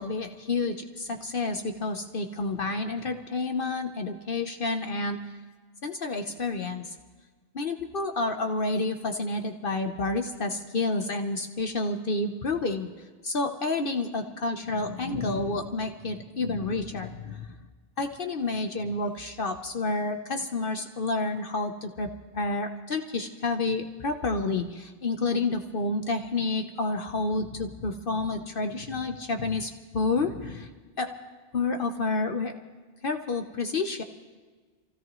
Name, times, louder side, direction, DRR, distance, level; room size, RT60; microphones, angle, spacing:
voice 1, 0.0-5.4 5.8-6.9 7.5-12.9 13.2-17.6 18.0-30.7 31.0-31.1 31.5-32.6 33.0-34.0, left 3 dB, 60° left, 5 dB, 1.1 m, -29 dB
27.0 x 16.5 x 3.1 m, 1.4 s
omnidirectional pair, 1.1 m